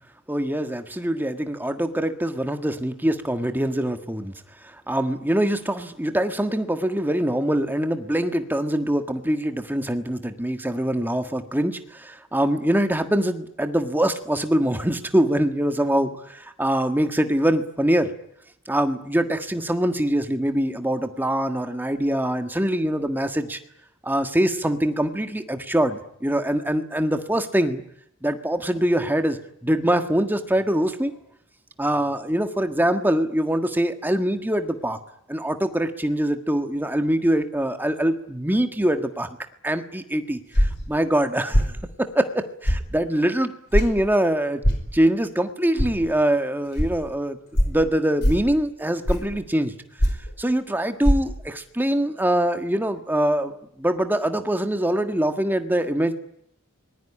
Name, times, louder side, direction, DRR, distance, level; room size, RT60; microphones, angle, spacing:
voice 1, 0.3-4.3 4.6-18.1 18.7-23.6 24.0-27.8 28.2-31.1 31.8-35.0 35.3-39.3 39.6-44.6 44.9-47.4 47.6-49.7 50.4-53.5 53.8-56.1, right 1 dB, 10° right, 7 dB, 1.6 m, -23 dB
sound 1, 40.5-40.9 41.5-41.7 42.7-42.8 43.7-43.9 44.6-44.9 45.8-45.9 46.8-46.9 47.5-47.8 48.2-48.5 49.1-49.3 50.0-50.3 51.0-51.2, equal, 55° left, 5.1 m, -20 dB
24.5 x 20.0 x 9.8 m, 0.74 s
head